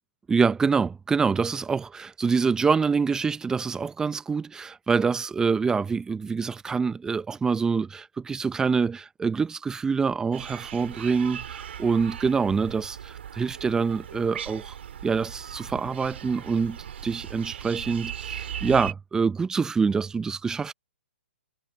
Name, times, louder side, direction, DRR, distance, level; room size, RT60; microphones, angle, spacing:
voice 1, 0.3-14.7 15.0-16.8 17.0-20.7, right 5 dB, 10° right, 0.7 m, -25 dB
sound 1, 10.3-18.9, right 9 dB, 65° right, 3.3 m, -38 dB
hypercardioid pair, 135°, 7 cm